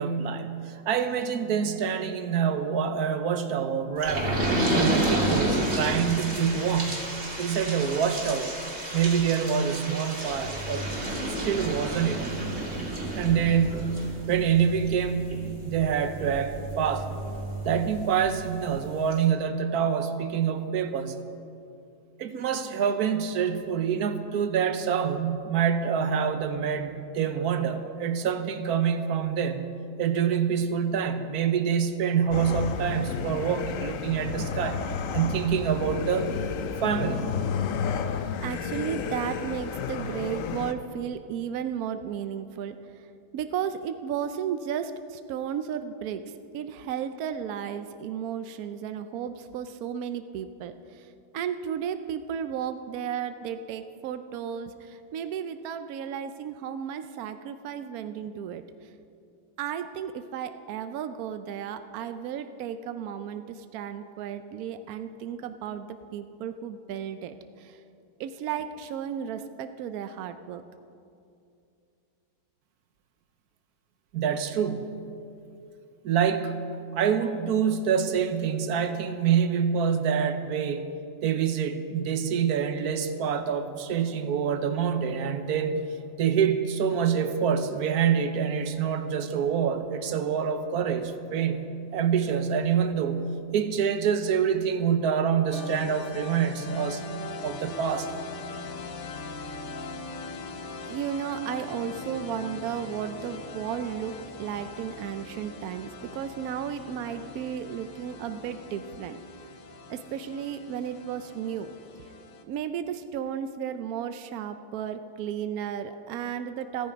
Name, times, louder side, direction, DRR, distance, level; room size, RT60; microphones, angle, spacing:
voice 1, 0.0-4.3 4.7-7.1 7.4-8.6 8.9-10.8 11.3-12.4 13.2-13.9 14.3-15.4 15.7-17.1 17.6-21.2 22.2-29.7 30.0-34.8 35.1-36.3 36.8-37.3 74.1-75.0 76.0-76.6 76.9-80.8 81.2-85.9 86.2-97.0 97.4-98.1, right 7 dB, 60° right, 9 dB, 1.1 m, -26 dB
sound 1, 4.0-18.3 18.8-18.9 19.1-19.2, right 1 dB, 30° right, 2.6 m, -30 dB
sound 2, 32.3-40.7, left 6 dB, 70° left, 0.7 m, -31 dB
voice 2, 38.4-43.1 43.3-58.9 59.6-65.9 66.1-67.8 68.2-70.6 100.9-109.2 109.9-112.1 112.5-116.9, right 8 dB, 80° right, 10 dB, 0.8 m, -34 dB
sound 3, 95.5-112.4, left 3 dB, 55° left, 1.1 m, -41 dB
15.0 x 14.5 x 5.1 m, 2.5 s
omnidirectional pair, 2.2 m